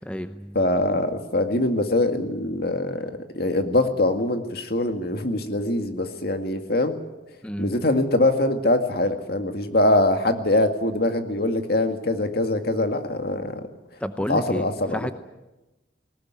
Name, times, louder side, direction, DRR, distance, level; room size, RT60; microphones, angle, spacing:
voice 1, 0.0-0.6 7.4-7.8 14.0-15.1, equal, 5° left, 9 dB, 0.7 m, -31 dB
voice 2, 0.5-7.0 7.6-13.6 14.3-15.0, left 1 dB, 60° left, 6 dB, 2.2 m, -23 dB
19.0 x 19.0 x 9.7 m, 1.0 s
head